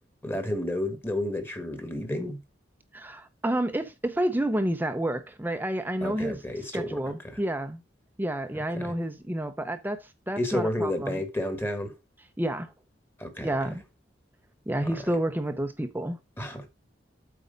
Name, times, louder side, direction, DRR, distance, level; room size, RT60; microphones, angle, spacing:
voice 1, 0.2-2.4 6.0-7.4 8.5-9.0 10.4-12.0 13.2-13.5 14.8-15.1 16.4-16.7, left 1 dB, 10° left, 1.6 m, -31 dB
voice 2, 2.9-6.4 6.7-7.8 8.2-11.2 12.4-12.7 13.4-13.8 14.7-16.2, right 1 dB, 10° right, 0.7 m, -29 dB
8.3 x 4.4 x 5.2 m
head